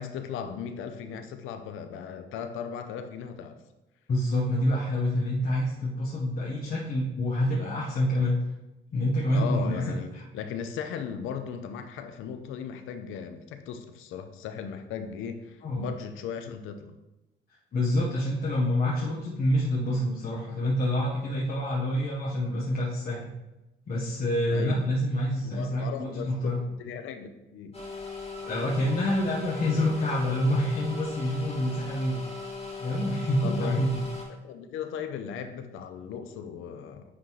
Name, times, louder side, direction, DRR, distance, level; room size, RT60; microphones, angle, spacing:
voice 1, 0.0-3.5 9.3-16.9 24.5-24.7 25.4-27.8 33.4-33.8 34.4-37.1, left 7 dB, 90° left, 8 dB, 0.6 m, -37 dB
voice 2, 4.1-8.4 8.9-10.2 15.6-15.8 17.7-23.3 23.9-26.6 28.4-32.2 32.8-34.0, left 1 dB, 50° left, -5 dB, 1.3 m, -27 dB
sound 1, 27.7-34.2, left 4 dB, 30° left, 2.2 m, -39 dB
9.4 x 3.8 x 3.2 m, 1.0 s
cardioid pair, 90°, 20 cm